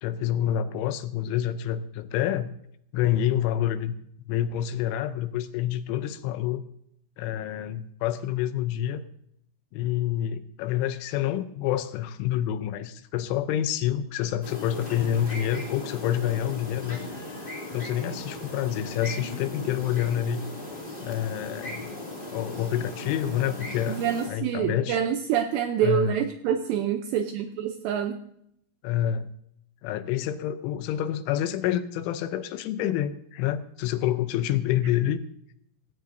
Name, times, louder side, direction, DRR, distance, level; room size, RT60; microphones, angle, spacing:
voice 1, 0.0-2.5 2.9-4.0 4.3-6.6 7.2-9.0 9.7-17.0 17.7-20.5 21.0-21.9 22.3-24.0 24.3-25.0 25.8-26.2 28.8-29.3 29.8-35.2, left 11 dB, 80° left, 12 dB, 3.1 m, -28 dB
sound 1, 14.4-24.3, left 1 dB, 25° left, 1.1 m, -38 dB
voice 2, 23.9-28.2, right 9 dB, 80° right, 7 dB, 2.6 m, -26 dB
16.5 x 16.5 x 2.7 m, 0.71 s
omnidirectional pair, 5.6 m